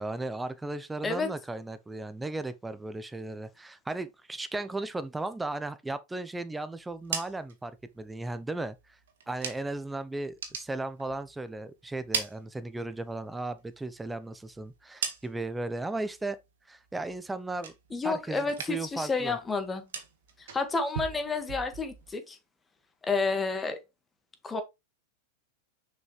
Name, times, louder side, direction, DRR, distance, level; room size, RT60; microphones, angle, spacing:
voice 1, 0.0-8.8 9.3-16.4 16.7-17.7 18.0-19.4, right 2 dB, 10° right, 0.7 m, -36 dB
sound 1, 6.8-9.9 10.2-11.5 11.8-13.2 13.5-15.7 16.0-16.5 16.8-18.2 18.4-19.0 19.3-22.1, right 7 dB, 75° right, 1.7 m, -40 dB
voice 2, 17.9-19.9 20.4-22.4 23.0-23.8 24.4-24.6, left 4 dB, 15° left, 1.8 m, -30 dB
6.3 x 5.3 x 3.3 m
hypercardioid pair, 105°, 0 cm